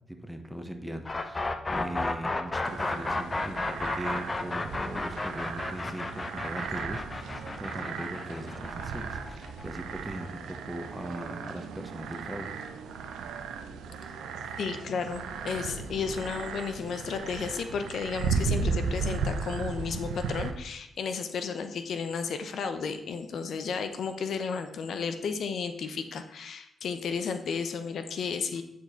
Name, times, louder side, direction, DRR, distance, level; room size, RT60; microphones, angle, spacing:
voice 1, 0.1-12.5 16.7-17.0, right 1 dB, 5° right, 5 dB, 1.2 m, -40 dB
sound 1, 1.0-10.9, left 2 dB, 30° left, 0.9 m, -33 dB
sound 2, 2.7-20.5, right 5 dB, 90° right, 0.8 m, -36 dB
voice 2, 14.6-28.6, left 5 dB, 70° left, 8 dB, 0.8 m, -33 dB
9.5 x 4.6 x 4.5 m, 0.82 s
cardioid pair, 60°, 0 cm